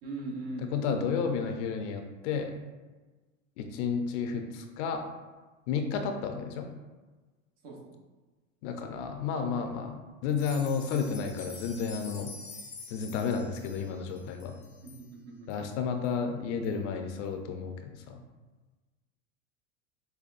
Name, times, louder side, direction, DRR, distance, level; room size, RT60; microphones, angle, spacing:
voice 1, 0.0-0.9 7.6-8.0 14.8-15.5, right 2 dB, 65° right, -1 dB, 1.2 m, -40 dB
voice 2, 0.7-2.5 3.6-5.0 5.7-6.7 8.6-12.3 12.9-14.5 15.5-18.2, left 6 dB, 65° left, 6 dB, 0.6 m, -32 dB
sound 1, 10.3-15.0 15.5-15.6 16.0-16.1 16.6-16.7, left 4 dB, 20° left, 0.3 m, -47 dB
5.3 x 2.2 x 2.5 m, 1.3 s
supercardioid pair, 105°, 39 cm